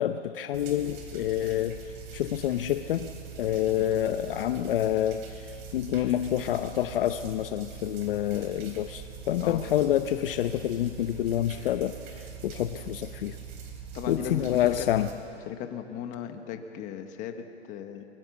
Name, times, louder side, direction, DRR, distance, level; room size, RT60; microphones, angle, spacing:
voice 1, 0.0-3.1 3.4-13.4 14.1-15.1, left 11 dB, 50° left, 10 dB, 0.7 m, -28 dB
sound 1, 0.5-15.1, right 7 dB, 30° right, 3.3 m, -43 dB
voice 2, 13.9-14.9 15.5-18.1, left 9 dB, 20° left, 6 dB, 1.2 m, -37 dB
22.0 x 21.5 x 7.2 m, 2.6 s
hypercardioid pair, 165°, 35 cm